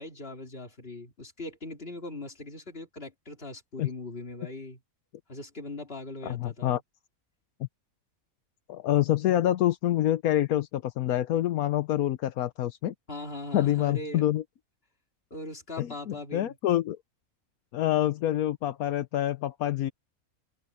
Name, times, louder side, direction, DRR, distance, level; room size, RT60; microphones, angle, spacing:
voice 1, 0.0-4.8 5.3-6.8 13.1-14.2 15.3-16.6, left 2 dB, 40° left, 3.1 m, -40 dB
voice 2, 6.2-6.8 8.7-12.9 13.5-14.4 15.8-17.0 17.7-19.9, left 13 dB, 85° left, 1.2 m, -26 dB
omnidirectional pair, 1.5 m